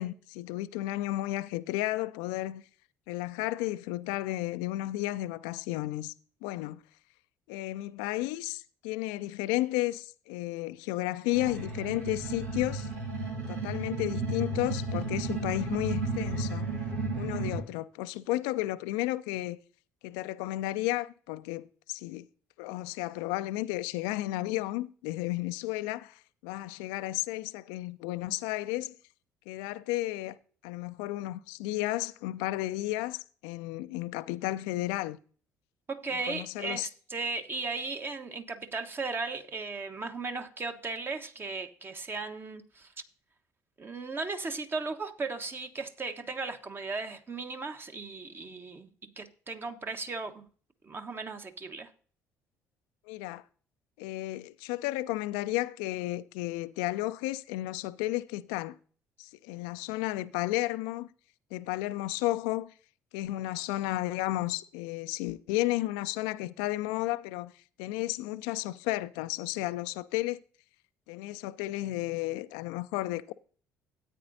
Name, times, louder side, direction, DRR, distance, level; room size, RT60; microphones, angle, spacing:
voice 1, 0.0-2.6 3.1-6.1 6.4-6.8 7.5-12.9 13.5-16.7 17.1-19.6 20.0-22.3 22.6-29.0 29.5-30.4 30.6-35.2 36.3-36.9 53.1-53.4 54.0-58.8 59.2-61.1 61.5-62.7 63.1-67.5 67.8-70.4 71.1-73.3, left 17 dB, 65° left, 0.4 m, -33 dB
sound 1, 11.3-17.6, right 3 dB, 75° right, 2.0 m, -33 dB
voice 2, 35.9-42.9 43.8-50.4 50.8-51.9, right 3 dB, 30° right, 1.2 m, -36 dB
13.5 x 9.2 x 2.7 m
figure-of-eight pair, 50°, 8 cm